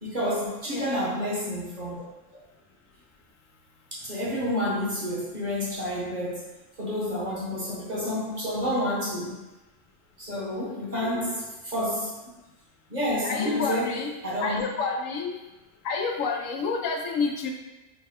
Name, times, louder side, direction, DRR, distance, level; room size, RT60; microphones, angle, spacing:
voice 1, 0.0-2.0 3.9-6.5 6.8-9.4 10.2-12.1 12.9-14.6, equal, 40° right, -6 dB, 0.8 m, -29 dB
voice 2, 10.9-11.4 13.2-14.1 14.4-15.3 15.8-17.5, left 4 dB, 85° left, 2 dB, 1.0 m, -29 dB
4.2 x 2.2 x 3.4 m, 1.1 s
omnidirectional pair, 1.3 m